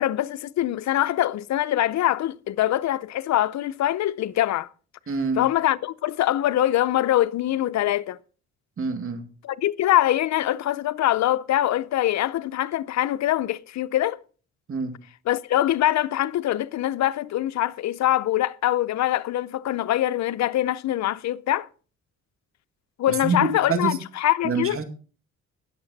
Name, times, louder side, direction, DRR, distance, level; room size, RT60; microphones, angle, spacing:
voice 1, 0.0-4.7 5.4-8.2 9.4-14.2 15.3-21.7 23.0-24.8, left 13 dB, 65° left, 0.6 m, -23 dB
voice 2, 5.1-5.4 8.8-9.2 14.7-14.9 23.1-24.0 24.4-24.8, right 4 dB, 45° right, 2.2 m, -26 dB
19.0 x 6.7 x 4.1 m
cardioid pair, 90°, 30 cm